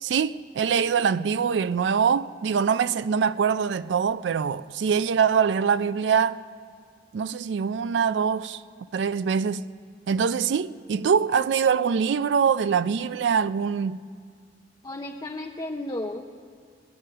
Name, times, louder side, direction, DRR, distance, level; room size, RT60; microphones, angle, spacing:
voice 1, 0.0-6.4 7.1-8.6 8.9-9.6 10.1-14.0, right 6 dB, 85° right, 0.4 m, -24 dB
voice 2, 14.8-16.2, left 1 dB, 25° left, 0.6 m, -33 dB
21.5 x 10.0 x 6.5 m
head